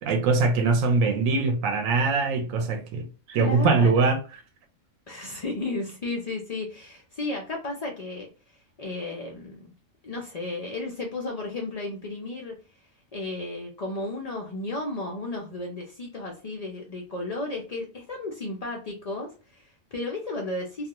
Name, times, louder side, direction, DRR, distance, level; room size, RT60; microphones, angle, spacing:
voice 1, 0.0-4.2, right 4 dB, 75° right, 0.9 m, -22 dB
voice 2, 3.4-4.1 5.1-8.3 8.8-9.7 10.0-12.5 13.1-20.9, left 2 dB, 85° left, 0.3 m, -33 dB
2.4 x 2.4 x 2.8 m
omnidirectional pair, 1.4 m